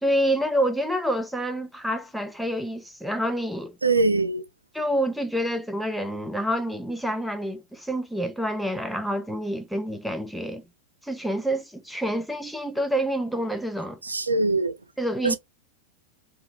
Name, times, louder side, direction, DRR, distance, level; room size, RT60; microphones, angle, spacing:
voice 1, 0.0-3.8 4.7-10.6 11.0-14.0 15.0-15.4, equal, ahead, 0.4 m, -27 dB
voice 2, 3.8-4.4 14.0-14.8 15.2-15.4, right 3 dB, 80° right, 0.4 m, -22 dB
2.9 x 2.6 x 2.3 m
figure-of-eight pair, 90°, 0 cm